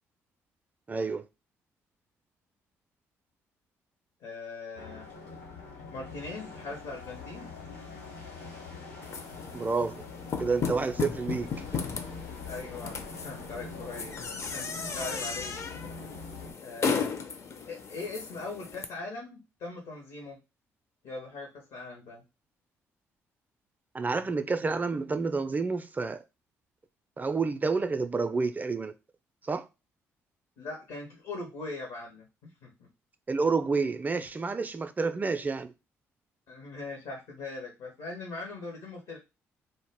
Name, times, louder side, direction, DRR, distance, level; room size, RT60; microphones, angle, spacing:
voice 1, 0.9-1.2 9.5-10.0 10.4-11.8 23.9-26.2 27.2-28.9 29.4-29.7 33.3-35.7, right 4 dB, 25° right, 0.4 m, -29 dB
voice 2, 4.2-5.1 5.9-7.5 12.5-13.0 13.2-14.1 14.5-15.5 16.6-17.1 17.7-20.4 21.0-22.2 30.6-32.9 36.5-39.2, left 3 dB, 70° left, 0.7 m, -40 dB
sound 1, 4.7-16.5, left 4 dB, 90° left, 1.0 m, -44 dB
sound 2, 9.0-18.9, left 5 dB, 45° left, 0.4 m, -35 dB
2.1 x 2.0 x 3.3 m
hypercardioid pair, 50°, 7 cm